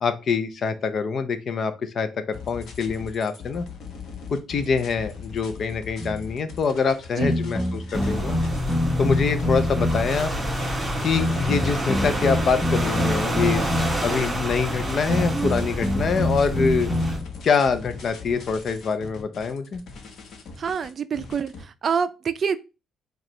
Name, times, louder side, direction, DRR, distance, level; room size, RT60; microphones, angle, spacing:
voice 1, 0.0-3.7 4.3-8.3 9.0-10.3 11.0-13.6 14.0-16.9 17.4-19.8, left 5 dB, 55° left, 0.6 m, -25 dB
sound 1, 2.3-21.6, left 5 dB, 70° left, 0.9 m, -41 dB
sound 2, 6.0-6.3 7.2-10.2 11.1-14.1 15.1-17.3, left 1 dB, 15° left, 1.0 m, -26 dB
sound 3, 7.9-17.2, equal, 15° right, 1.8 m, -28 dB
voice 2, 20.6-22.6, right 6 dB, 50° right, 0.4 m, -26 dB
4.8 x 2.4 x 3.1 m
cardioid pair, 90°, 0 cm